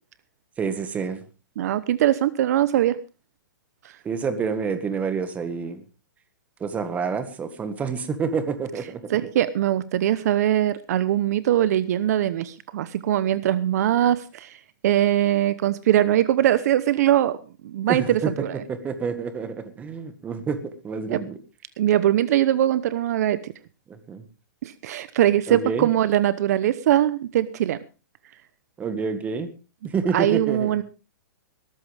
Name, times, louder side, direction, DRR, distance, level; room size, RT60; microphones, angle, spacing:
voice 1, 0.6-1.2 4.0-5.8 6.6-9.1 17.9-18.3 18.7-20.6 20.8-21.4 23.9-24.2 25.5-25.9 28.8-29.5 29.8-30.7, right 5 dB, 15° right, 10 dB, 1.7 m, -28 dB
voice 2, 1.6-3.0 9.1-17.4 17.6-18.6 21.1-21.2 21.8-23.5 24.6-27.8 30.1-30.8, right 12 dB, 55° right, 15 dB, 0.9 m, -21 dB
19.5 x 14.0 x 3.5 m, 0.31 s
hypercardioid pair, 155°, 10 cm